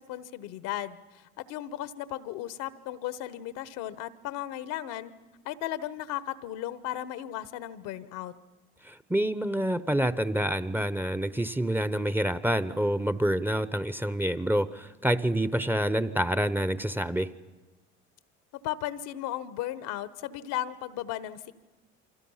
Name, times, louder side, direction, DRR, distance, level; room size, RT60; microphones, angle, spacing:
voice 1, 0.0-5.1 5.4-8.3 18.5-21.5, left 13 dB, 70° left, 15 dB, 1.2 m, -35 dB
voice 2, 8.8-17.3, right 1 dB, 5° right, 15 dB, 0.9 m, -27 dB
29.0 x 25.0 x 5.7 m, 1.2 s
hypercardioid pair, 65°, 33 cm